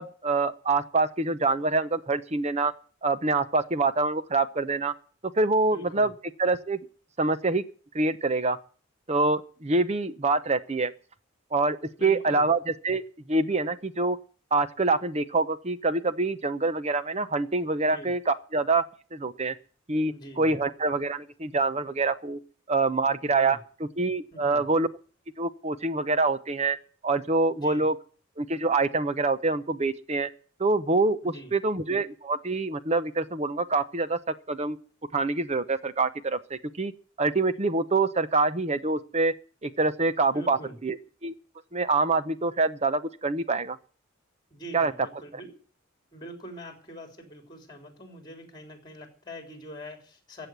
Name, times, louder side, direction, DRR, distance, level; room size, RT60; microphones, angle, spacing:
voice 1, 0.0-2.7 3.0-4.9 5.4-6.1 6.4-6.8 7.2-7.6 7.9-8.6 9.1-10.9 11.5-13.0 13.3-14.2 14.5-18.8 19.1-19.5 19.9-22.4 22.7-24.9 25.4-26.8 27.0-27.9 28.4-30.3 30.6-34.8 35.1-36.9 37.2-39.3 39.6-41.3 41.7-43.8 44.7-44.9, right 3 dB, 30° right, 13 dB, 0.8 m, -26 dB
voice 2, 5.7-6.1 12.0-12.4 17.9-18.1 20.1-20.6 23.3-23.6 24.3-24.7 27.6-27.9 31.2-31.5 40.3-40.8 44.5-45.5 46.1-50.5, right 1 dB, 20° left, 5 dB, 3.7 m, -44 dB
15.0 x 7.7 x 9.5 m, 0.43 s
head